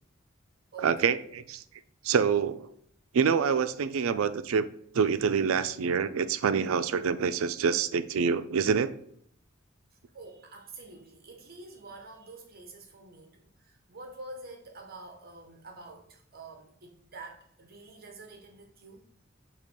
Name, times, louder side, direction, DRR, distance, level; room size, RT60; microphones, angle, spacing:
voice 1, 0.8-1.6 2.0-2.7 3.1-4.7 4.9-8.9, right 6 dB, 85° right, 0.4 m, -26 dB
voice 2, 10.1-19.0, right 3 dB, 50° right, 0.9 m, -47 dB
6.6 x 2.9 x 5.2 m
head